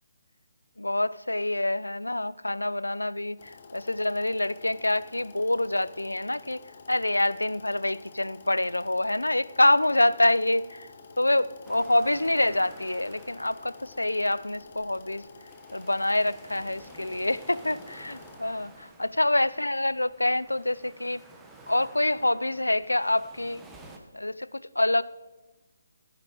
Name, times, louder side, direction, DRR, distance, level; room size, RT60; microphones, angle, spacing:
voice 1, 0.8-6.6 6.9-10.9 11.2-15.2 15.7-21.2 21.7-23.6 24.1-25.0, left 1 dB, 90° left, 18 dB, 0.4 m, -26 dB
sound 1, 3.4-18.4, left 4 dB, 45° left, 1.5 m, -50 dB
sound 2, 11.6-24.0, right 2 dB, 10° right, 1.2 m, -52 dB
15.0 x 9.7 x 4.6 m, 1.2 s
figure-of-eight pair, 145°, 0 cm